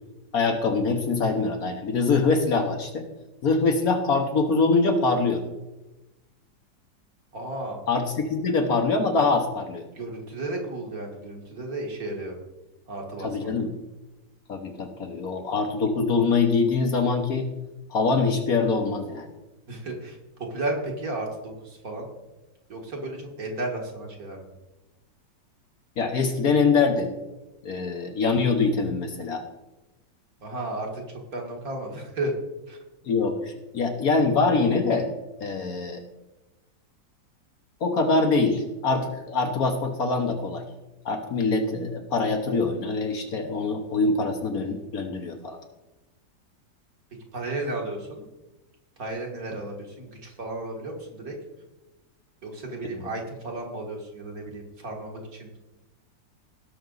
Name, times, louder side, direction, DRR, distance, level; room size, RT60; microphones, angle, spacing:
voice 1, 0.3-3.1 3.4-5.4 7.9-9.9 13.2-13.7 14.5-17.5 17.9-19.3 26.0-27.1 27.6-29.4 33.0-35.1 35.4-36.0 37.8-40.6 41.0-45.6 52.9-53.1, left 4 dB, 55° left, 4 dB, 1.3 m, -24 dB
voice 2, 7.3-7.8 10.0-12.4 12.9-13.5 19.7-22.1 22.7-24.5 30.4-31.0 31.3-32.3 32.7-32.8 47.3-48.2 49.0-51.4 52.4-55.6, right 2 dB, 50° right, 1 dB, 2.2 m, -33 dB
18.0 x 6.1 x 3.9 m, 1.1 s
omnidirectional pair, 2.0 m